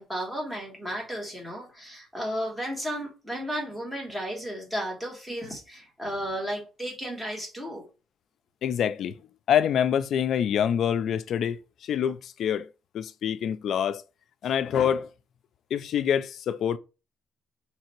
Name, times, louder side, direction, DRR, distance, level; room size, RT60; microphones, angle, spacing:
voice 1, 0.0-7.8, equal, 5° right, 1.6 m, -34 dB
voice 2, 8.6-9.1 9.5-11.6 11.9-12.7 12.9-14.0 14.4-15.1 15.7-16.8, left 9 dB, 60° left, 0.3 m, -25 dB
3.3 x 2.8 x 4.4 m
cardioid pair, 135°, 0 cm